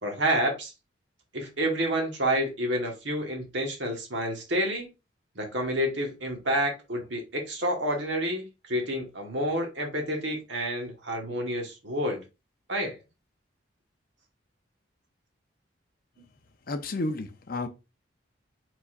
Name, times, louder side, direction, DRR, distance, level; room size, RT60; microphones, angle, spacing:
voice 1, 0.0-0.7 1.3-4.9 5.3-12.2 12.7-13.0, equal, 65° right, 1.4 m, -29 dB
voice 2, 16.7-17.7, left 2 dB, 45° left, 0.6 m, -31 dB
4.5 x 4.0 x 2.5 m
head